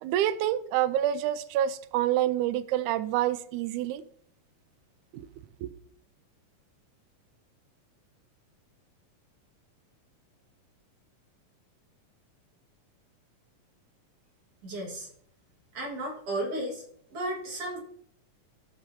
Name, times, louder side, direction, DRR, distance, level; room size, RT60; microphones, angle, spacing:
voice 1, 0.0-4.0 5.1-5.2 5.6-5.7, right 12 dB, 90° right, 1.7 m, -27 dB
voice 2, 14.6-15.1 15.7-16.8 17.1-17.8, right 1 dB, 50° right, 2.4 m, -33 dB
14.5 x 6.3 x 2.7 m
omnidirectional pair, 4.0 m